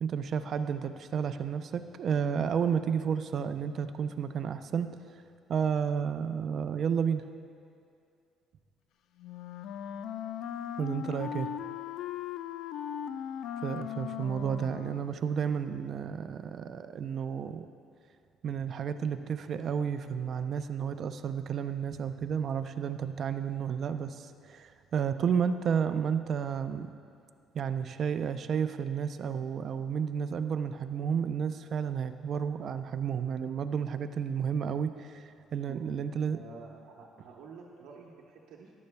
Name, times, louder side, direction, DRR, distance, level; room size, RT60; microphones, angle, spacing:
voice 1, 0.0-4.9 5.5-7.2 10.8-11.5 13.6-17.7 18.4-26.9 27.5-36.4, right 7 dB, 55° right, 10 dB, 0.5 m, -31 dB
Wind instrument woodwind instrument, 9.2-15.2, left 9 dB, 70° left, 0.3 m, -38 dB
voice 2, 36.3-38.7, right 5 dB, 80° right, -3 dB, 0.9 m, -49 dB
14.0 x 10.5 x 2.2 m, 2.4 s
cardioid pair, 95°, 0 cm